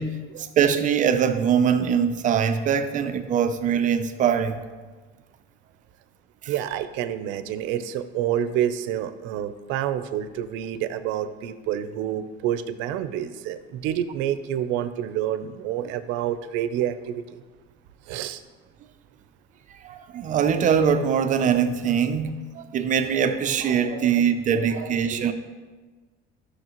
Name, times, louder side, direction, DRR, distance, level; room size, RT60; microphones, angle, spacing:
voice 1, 0.0-4.6 6.4-6.5 19.8-25.3, right 7 dB, 40° right, 0.5 m, -22 dB
voice 2, 6.5-17.4 18.1-18.4 23.6-24.2 24.7-25.3, right 10 dB, 85° right, 0.6 m, -28 dB
12.0 x 6.4 x 3.0 m
cardioid pair, 140°, 19 cm